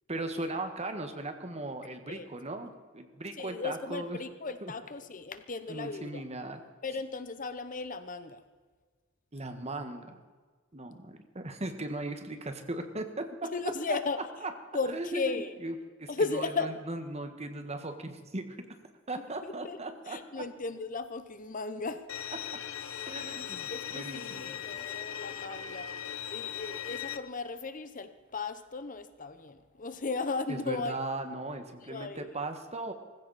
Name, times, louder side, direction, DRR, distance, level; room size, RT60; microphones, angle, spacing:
voice 1, 0.1-4.2 4.6-4.7 5.7-6.6 9.3-10.2 10.7-13.5 13.9-14.0 14.4-14.5 14.9-15.7 16.0-18.8 19.1-20.4 23.1-24.9 30.5-32.9, right 2 dB, 30° right, 7 dB, 1.5 m, -38 dB
voice 2, 3.4-6.2 6.8-8.4 13.5-14.2 14.7-15.6 16.1-16.7 19.4-19.8 20.1-22.1 23.7-25.9 26.3-31.0 31.9-32.3, left 4 dB, 40° left, 11 dB, 0.9 m, -36 dB
Bowed string instrument, 22.1-27.2, left 10 dB, 90° left, 0.8 m, -39 dB
19.0 x 15.5 x 4.2 m, 1.5 s
head